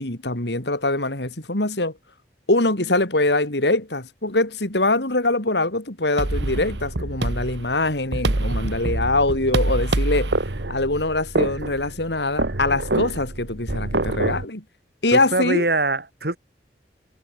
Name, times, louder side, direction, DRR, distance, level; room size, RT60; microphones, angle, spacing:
voice 1, 0.0-1.9 2.5-10.3 10.7-14.6 15.0-15.6, left 2 dB, 80° left, 3.9 m, -23 dB
sound 1, 6.2-14.4, right 2 dB, 85° right, 1.6 m, -26 dB
voice 2, 15.1-16.4, right 2 dB, 65° right, 3.3 m, -23 dB
head